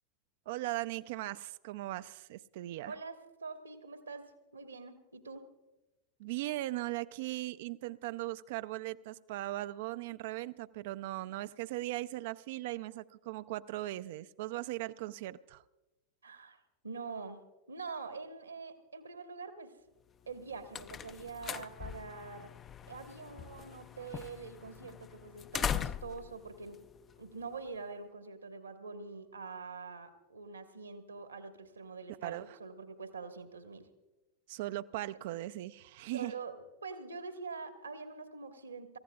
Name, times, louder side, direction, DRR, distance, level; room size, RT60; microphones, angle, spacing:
voice 1, 0.5-2.9 6.2-15.6 32.2-32.5 34.5-36.3, right 17 dB, 50° right, 14 dB, 0.4 m, -38 dB
voice 2, 2.9-5.4 16.2-16.6 16.8-17.4 17.7-19.7 20.3-22.5 22.9-26.8 27.2-33.9 36.1-36.5 36.8-39.0, right 4 dB, 75° right, 7 dB, 1.4 m, -45 dB
sound 1, 20.2-27.7, left 8 dB, 25° left, 0.4 m, -41 dB
28.0 x 15.0 x 2.3 m, 1.0 s
figure-of-eight pair, 90°, 0 cm